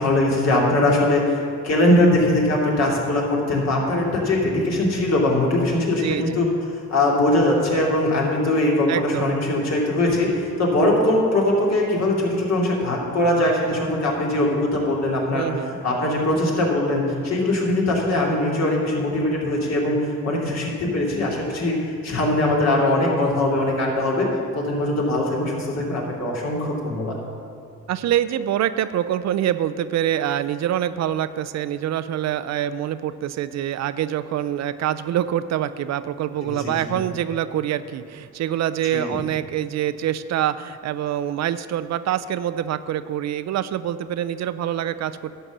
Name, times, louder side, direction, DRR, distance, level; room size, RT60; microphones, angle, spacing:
voice 1, 0.0-6.5 6.9-15.5 15.8-24.3 24.5-27.2 36.4-37.0 38.9-39.2, left 1 dB, 60° left, -2 dB, 2.7 m, -21 dB
voice 2, 6.0-6.4 8.9-9.3 15.3-15.7 27.9-45.3, right 11 dB, 60° right, 13 dB, 0.5 m, -25 dB
11.5 x 5.4 x 7.3 m, 2.5 s
cardioid pair, 90°, 30 cm